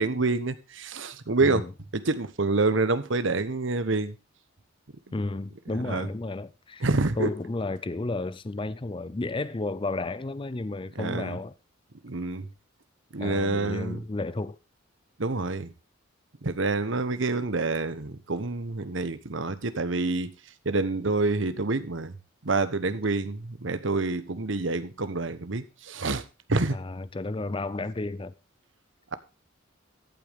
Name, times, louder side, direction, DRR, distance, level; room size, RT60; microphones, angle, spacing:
voice 1, 0.0-1.7 1.9-4.1 5.7-6.1 6.8-7.3 11.0-11.4 12.0-12.5 13.1-14.0 15.2-15.7 16.4-20.3 20.6-22.1 22.4-26.2 26.5-26.8, right 3 dB, 65° right, 1.0 m, -27 dB
voice 2, 1.4-1.7 5.1-6.9 7.2-11.5 13.2-14.6 26.7-28.3, left 2 dB, 25° left, 0.5 m, -32 dB
14.0 x 8.2 x 3.5 m
head